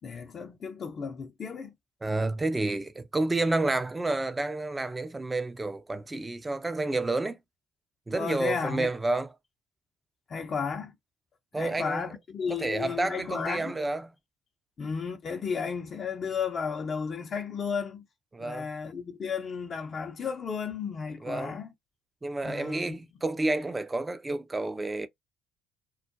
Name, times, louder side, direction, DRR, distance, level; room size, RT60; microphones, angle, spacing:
voice 1, 0.0-1.7 8.1-8.9 10.3-11.0 11.6-13.7 14.8-18.0 18.4-21.7 22.4-23.0, left 6 dB, 45° left, 0.6 m, -33 dB
voice 2, 2.0-7.4 8.1-9.3 11.5-12.1 12.5-14.1 18.3-18.7 21.2-21.5 22.2-25.1, right 2 dB, 20° right, 0.5 m, -30 dB
2.2 x 2.1 x 2.7 m
figure-of-eight pair, 50°, 0 cm